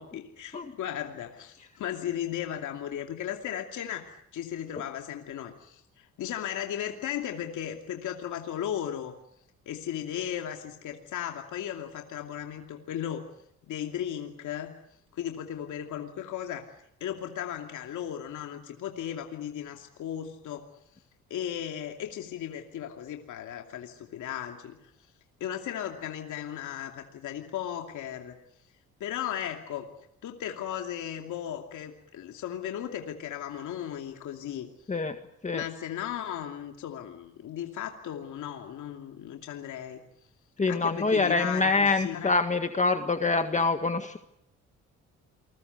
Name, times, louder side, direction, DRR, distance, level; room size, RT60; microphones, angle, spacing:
voice 1, 0.0-9.1 9.7-13.3 13.6-14.8 15.1-16.7 17.0-20.7 21.3-24.8 25.4-28.4 29.0-29.9 30.2-34.7 35.5-40.0 40.7-42.3, left 10 dB, 75° left, 3 dB, 2.7 m, -36 dB
voice 2, 40.6-44.2, left 3 dB, 25° left, 7 dB, 1.8 m, -25 dB
28.0 x 21.5 x 8.1 m, 0.75 s
cardioid pair, 90°, 30 cm